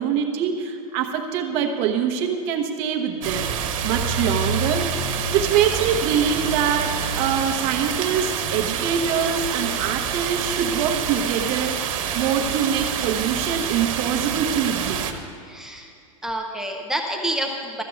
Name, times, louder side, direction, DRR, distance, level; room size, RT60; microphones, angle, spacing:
voice 1, 0.0-3.5 3.8-4.9 5.3-15.1, right 7 dB, 35° right, 3 dB, 0.9 m, -24 dB
sound 1, 3.2-15.1, right 7 dB, 65° right, 1.3 m, -27 dB
voice 2, 15.4-15.9 16.2-17.8, right 1 dB, 5° right, 0 dB, 0.6 m, -28 dB
13.5 x 7.4 x 6.9 m, 2.4 s
supercardioid pair, 165°, 18 cm